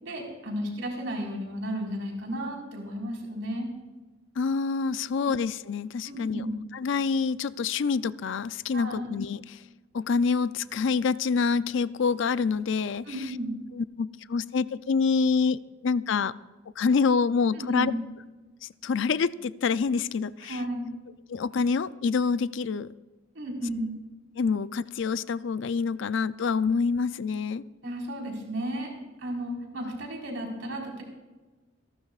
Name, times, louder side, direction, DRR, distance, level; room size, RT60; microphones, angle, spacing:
voice 1, 0.0-3.7 5.1-5.2 6.1-6.5 8.7-9.1 13.0-13.5 17.5-17.9 20.4-20.9 23.3-23.9 27.8-28.9 29.2-31.0, equal, 65° right, -1 dB, 4.5 m, -33 dB
voice 2, 4.4-6.4 6.7-9.4 9.9-13.2 13.7-16.3 16.8-17.9 18.6-20.6 21.3-22.9 24.4-27.6, left 5 dB, 60° left, 16 dB, 0.4 m, -26 dB
27.5 x 12.5 x 2.4 m, 1.2 s
head